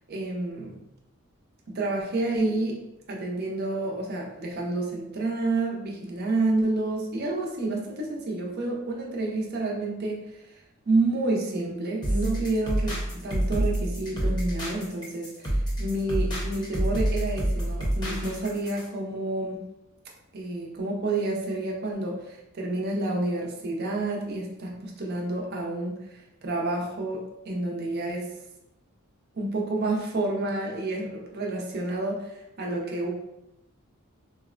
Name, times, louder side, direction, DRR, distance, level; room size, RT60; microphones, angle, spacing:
voice 1, 0.1-0.8 1.7-2.8 3.1-10.4 10.9-19.6 20.3-25.9 26.4-28.2 29.3-33.1, right 2 dB, 45° right, -1 dB, 0.6 m, -29 dB
sound 1, 12.0-18.9, right 1 dB, 20° left, 0.7 m, -28 dB
3.8 x 2.1 x 2.4 m, 0.89 s
head